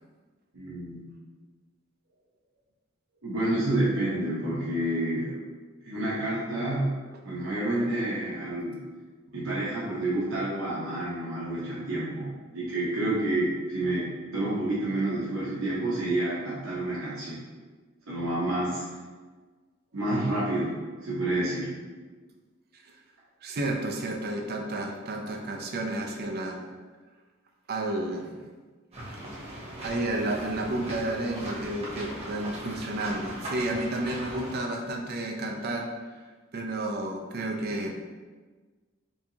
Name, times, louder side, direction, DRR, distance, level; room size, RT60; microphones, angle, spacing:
voice 1, 0.5-1.0 3.2-5.3 5.8-7.0 7.2-8.8 9.3-17.4 18.1-18.8 19.9-20.7 21.0-21.7, right 1 dB, 75° right, -8 dB, 0.9 m, -29 dB
voice 2, 23.4-26.6 27.7-28.4 29.8-35.9 36.5-38.0, right 1 dB, 50° right, 2 dB, 0.5 m, -31 dB
sound 1, 28.9-34.6, right 1 dB, 30° right, 1.0 m, -39 dB
4.4 x 2.8 x 2.7 m, 1.4 s
head